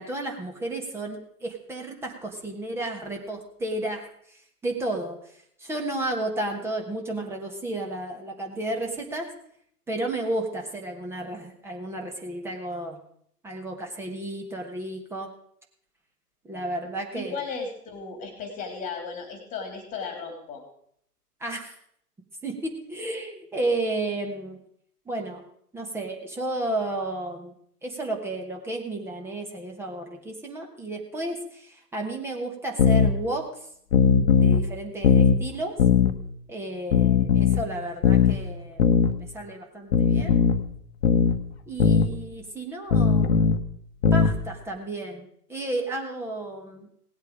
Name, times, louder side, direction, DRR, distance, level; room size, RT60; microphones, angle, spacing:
voice 1, 0.0-9.3 9.9-13.0 13.4-15.3 16.4-17.5 21.4-21.7 22.4-24.6 25.0-25.4 25.7-27.5 27.8-33.7 34.3-35.8 36.5-40.4 41.7-43.6 44.1-46.9, right 2 dB, 5° right, 1 dB, 1.4 m, -32 dB
voice 2, 17.1-20.6, left 5 dB, 15° left, 5 dB, 2.8 m, -35 dB
sound 1, 32.8-33.1 33.9-34.6 35.0-35.4 35.8-36.1 36.9-37.6 38.0-38.4 38.8-39.1 39.9-40.6 41.0-41.4 41.8-42.1 42.9-43.6 44.0-44.4, left 7 dB, 40° left, 1.3 m, -19 dB
18.0 x 8.3 x 5.0 m, 0.69 s
figure-of-eight pair, 125°, 47 cm